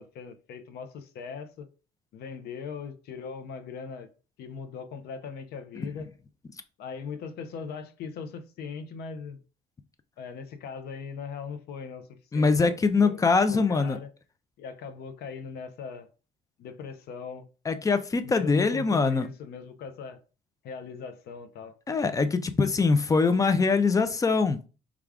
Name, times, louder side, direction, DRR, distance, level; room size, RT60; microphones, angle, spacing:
voice 1, 0.0-1.7 2.1-4.1 4.4-6.1 6.8-9.4 10.2-14.1 14.6-16.1 16.6-17.5 18.2-20.2 20.6-21.7, left 6 dB, 70° left, 0.6 m, -40 dB
voice 2, 12.3-14.0 17.7-19.3 21.9-24.6, left 4 dB, 20° left, 0.4 m, -23 dB
3.4 x 2.4 x 3.5 m
cardioid pair, 110°, 17 cm